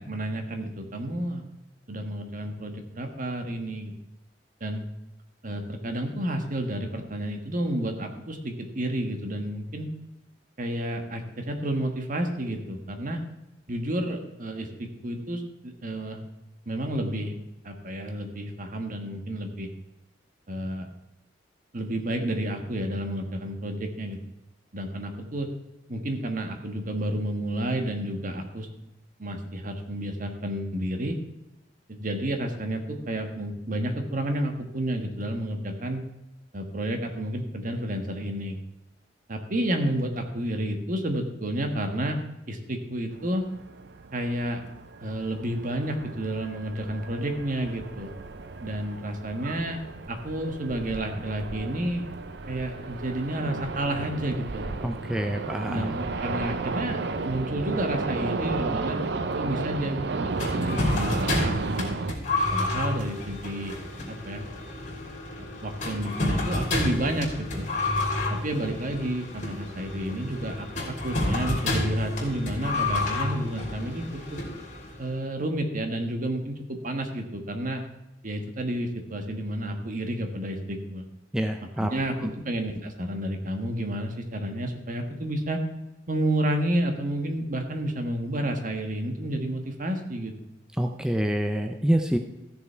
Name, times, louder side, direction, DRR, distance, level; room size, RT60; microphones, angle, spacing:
voice 1, 0.0-1.4 1.9-3.9 4.6-4.8 5.4-9.9 10.6-13.2 13.7-16.2 16.7-17.4 17.6-19.7 20.5-20.9 21.7-24.2 24.7-25.5 25.9-28.7 29.2-31.2 31.9-36.0 36.5-38.6 39.3-42.2 42.5-43.4 44.1-44.6 45.0-48.1 48.6-49.8 50.1-52.1 52.5-54.6 55.7-59.0 59.4-62.0 62.5-63.8 64.1-64.5 65.4-67.7 68.3-70.7 71.0-74.4 75.0-77.8 78.2-81.0 81.8-85.6 86.1-90.3, right 1 dB, 50° right, 5 dB, 1.5 m, -30 dB
sound 1, 43.1-62.1, right 3 dB, 65° right, 0.7 m, -33 dB
voice 2, 54.8-55.9 81.3-81.9 82.2-82.3 90.8-92.2, equal, 5° right, 4 dB, 0.5 m, -26 dB
sound 2, 60.4-75.1, left 2 dB, 45° left, 3.2 m, -30 dB
14.5 x 6.8 x 4.5 m, 0.95 s
head